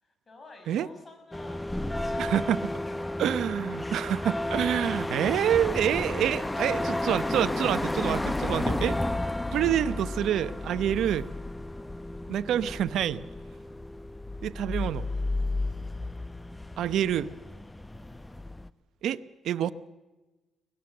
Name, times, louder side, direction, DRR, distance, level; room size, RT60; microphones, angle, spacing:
voice 1, 0.0-3.9 6.2-7.5, left 2 dB, 35° left, 5 dB, 7.6 m, -49 dB
sound 1, 1.3-18.7, left 2 dB, 10° left, 0.8 m, -32 dB
voice 2, 2.2-2.6 3.2-9.0 9.5-11.3 12.3-13.2 14.4-15.1 16.8-17.3 19.0-19.7, right 10 dB, 75° right, 14 dB, 0.9 m, -27 dB
24.5 x 18.5 x 7.8 m, 1.1 s
cardioid pair, 90°, 0 cm